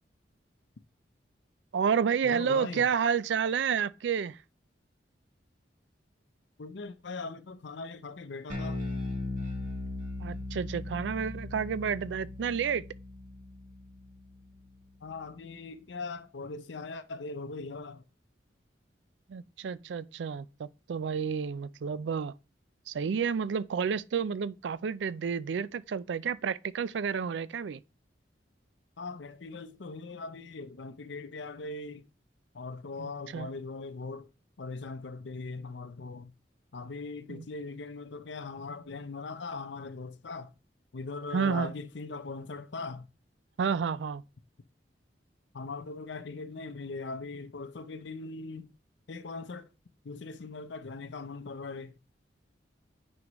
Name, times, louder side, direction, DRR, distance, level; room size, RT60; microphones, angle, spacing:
voice 1, 1.7-4.4 10.2-12.8 19.3-22.3 22.9-27.8 33.0-33.5 37.3-37.4 41.3-41.7 43.6-44.2, right 6 dB, 75° right, 0.4 m, -30 dB
voice 2, 2.2-2.8 6.6-8.8 15.0-18.0 29.0-32.1 32.5-34.3 34.6-36.3 36.7-40.5 40.9-43.0 45.5-48.7 49.1-49.6 50.0-51.9, left 3 dB, 75° left, 0.6 m, -40 dB
Bass guitar, 8.5-14.9, left 2 dB, 50° right, 2.3 m, -38 dB
9.5 x 5.2 x 3.0 m
head